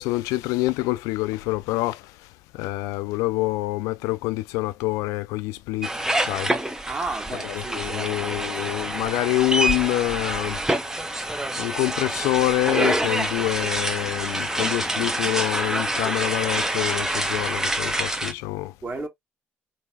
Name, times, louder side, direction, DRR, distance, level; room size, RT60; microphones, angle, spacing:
voice 1, 0.0-2.2 2.5-6.5 7.5-10.6 11.6-18.7, left 19 dB, 70° left, 0.4 m, -26 dB
sound 1, 5.8-18.3, right 1 dB, 10° right, 0.7 m, -26 dB
voice 2, 6.9-8.8 18.8-19.1, right 3 dB, 35° right, 1.4 m, -34 dB
3.9 x 2.1 x 2.7 m
hypercardioid pair, 50°, 6 cm